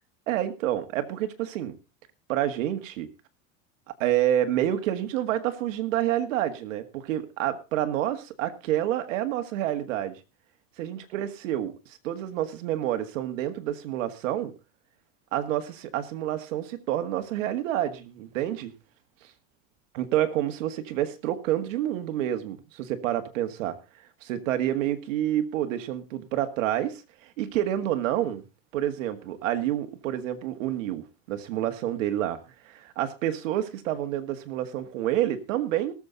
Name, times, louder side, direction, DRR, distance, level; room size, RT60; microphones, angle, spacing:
voice 1, 0.3-1.8 2.3-3.1 4.0-10.2 10.8-11.7 12.0-14.5 15.3-18.7 19.9-23.8 24.2-27.0 27.4-28.4 28.7-32.4 32.7-35.9, right 12 dB, 80° right, 9 dB, 1.9 m, -28 dB
19.0 x 7.5 x 4.0 m, 0.29 s
supercardioid pair, 120°, 38 cm